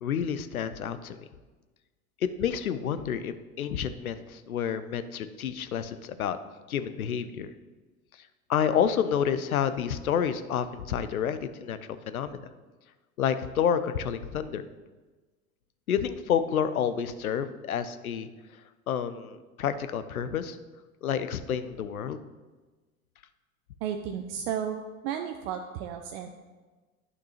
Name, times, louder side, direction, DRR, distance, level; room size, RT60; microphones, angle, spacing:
voice 1, 0.0-1.2 2.4-6.4 6.7-7.5 8.5-11.8 12.1-12.4 13.2-14.6 15.9-18.3 18.9-20.6 21.0-22.2, left 8 dB, 80° left, 12 dB, 0.6 m, -29 dB
voice 2, 23.8-26.3, right 8 dB, 45° right, 5 dB, 0.5 m, -33 dB
10.5 x 5.9 x 2.9 m, 1.3 s
figure-of-eight pair, 80°, 42 cm